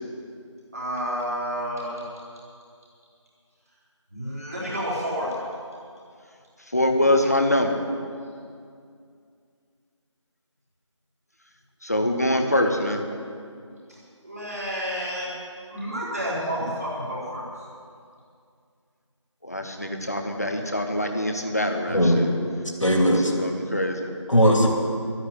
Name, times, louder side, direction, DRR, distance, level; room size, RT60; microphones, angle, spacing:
voice 1, 0.7-2.1 4.1-5.3 14.2-15.3 15.7-17.4, equal, 30° right, -7 dB, 4.5 m, -30 dB
voice 2, 6.7-7.9 11.8-13.0 19.4-22.3 23.2-24.1, left 1 dB, 30° left, 4 dB, 1.1 m, -24 dB
voice 3, 21.9-23.8 24.3-24.7, equal, 70° left, 1 dB, 2.9 m, -20 dB
13.0 x 10.5 x 8.9 m, 2.3 s
figure-of-eight pair, 175°, 16 cm